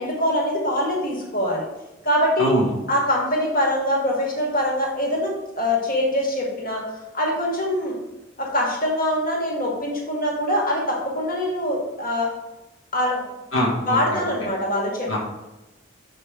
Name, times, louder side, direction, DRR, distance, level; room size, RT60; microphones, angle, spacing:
voice 1, 0.0-1.6 2.0-2.5 2.9-6.8 7.1-7.9 8.4-12.3 12.9-13.2 13.9-15.2, left 1 dB, 45° left, -2 dB, 1.7 m, -23 dB
voice 2, 2.4-2.7 13.5-14.3 15.1-15.2, equal, 80° left, -4 dB, 1.4 m, -23 dB
7.1 x 4.9 x 3.5 m, 1.0 s
head